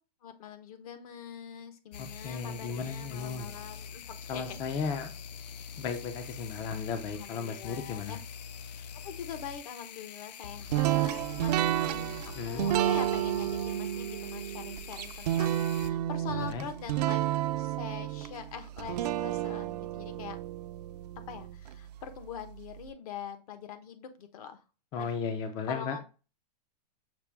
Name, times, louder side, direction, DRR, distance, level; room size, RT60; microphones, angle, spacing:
voice 1, 0.2-4.9 5.7-5.8 7.1-8.2 9.0-17.2 17.6-20.4 21.3-24.6 24.9-25.1 25.7-26.0, left 8 dB, 60° left, 9 dB, 0.9 m, -44 dB
sound 1, 1.9-15.9, left 7 dB, 80° left, 0.5 m, -44 dB
voice 2, 2.0-3.5 4.3-5.1 5.8-8.2 12.4-12.7 16.3-16.6 24.9-26.0, left 5 dB, 20° left, 7 dB, 0.3 m, -35 dB
sound 2, 10.7-21.8, right 13 dB, 70° right, 0.4 m, -31 dB
5.9 x 2.2 x 3.3 m, 0.32 s
supercardioid pair, 150°, 21 cm